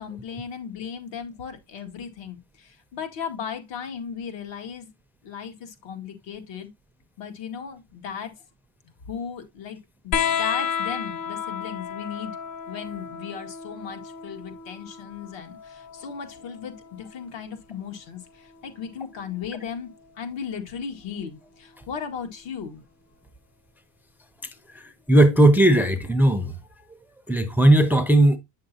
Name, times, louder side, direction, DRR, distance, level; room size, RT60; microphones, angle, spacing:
voice 1, 0.0-4.9 5.2-6.7 7.2-8.3 9.1-9.8 10.0-12.4 12.7-22.8, left 7 dB, 70° left, 2.0 m, -36 dB
sound 1, 10.1-17.2 18.6-19.4 20.7-20.8, left 7 dB, 40° left, 0.8 m, -32 dB
voice 2, 24.7-26.5 27.3-28.4, right 1 dB, 5° right, 0.5 m, -17 dB
8.2 x 6.5 x 2.7 m
cardioid pair, 145°, 46 cm